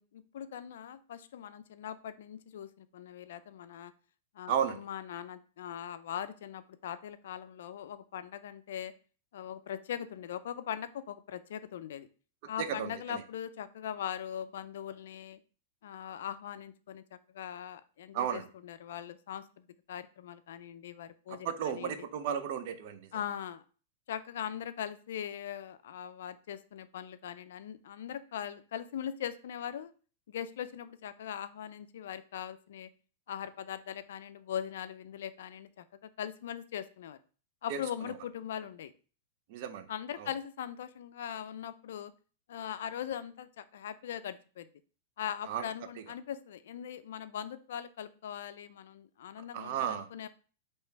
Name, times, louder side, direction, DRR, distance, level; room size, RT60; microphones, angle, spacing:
voice 1, 0.0-3.9 4.3-8.9 9.3-12.1 12.5-15.4 15.8-22.1 23.1-23.6 24.1-29.9 30.3-32.9 33.3-37.2 37.6-38.9 39.9-42.1 42.5-44.7 45.2-50.3, left 9 dB, 75° left, 12 dB, 0.4 m, -41 dB
voice 2, 4.5-4.8 12.6-13.2 18.1-18.4 21.4-23.1 37.7-37.8 39.5-39.8 40.2-40.3 45.5-45.6 49.5-50.1, right 8 dB, 55° right, 10 dB, 0.5 m, -33 dB
3.2 x 2.9 x 4.5 m, 0.38 s
supercardioid pair, 140°, 0 cm